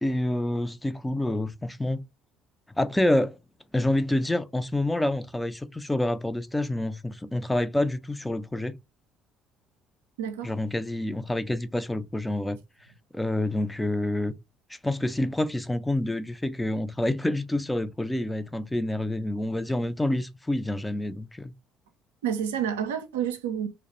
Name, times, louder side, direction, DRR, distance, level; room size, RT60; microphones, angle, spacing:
voice 1, 0.0-2.0 2.8-3.4 3.7-8.7 10.4-12.6 13.1-14.3 14.7-21.5, left 1 dB, 10° left, 0.4 m, -27 dB
voice 2, 10.2-10.5 22.2-23.7, right 9 dB, 75° right, 0.4 m, -29 dB
2.2 x 2.0 x 2.9 m
figure-of-eight pair, 55°, 0 cm